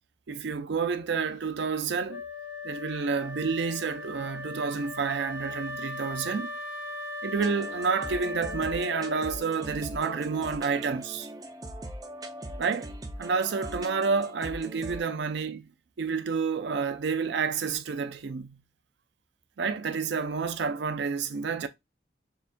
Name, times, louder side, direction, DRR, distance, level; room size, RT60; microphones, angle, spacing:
voice 1, 0.3-2.2 2.6-6.5 7.2-11.3 12.6-12.9 13.2-15.7 16.0-18.6 19.6-21.7, right 5 dB, 70° right, 0.4 m, -29 dB
Wind instrument woodwind instrument, 2.1-9.7, left 2 dB, 75° left, 0.7 m, -38 dB
sound 1, 7.4-15.0, right 1 dB, 20° right, 0.5 m, -41 dB
6.7 x 2.3 x 2.5 m
head